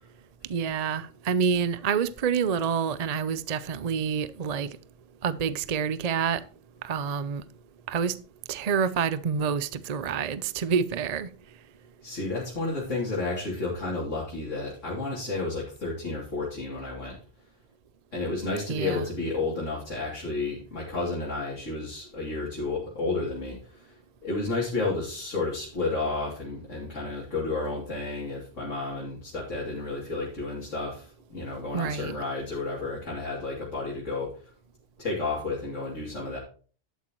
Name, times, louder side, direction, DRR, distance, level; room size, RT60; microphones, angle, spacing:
voice 1, 0.5-4.7 5.2-6.4 6.8-7.4 7.9-8.1 8.5-11.3 18.7-19.0 31.7-32.2, right 6 dB, 45° right, 0.6 m, -27 dB
voice 2, 12.0-17.2 18.1-34.5 35.0-36.4, left 3 dB, 75° left, 3.3 m, -31 dB
11.5 x 8.4 x 3.0 m
omnidirectional pair, 1.3 m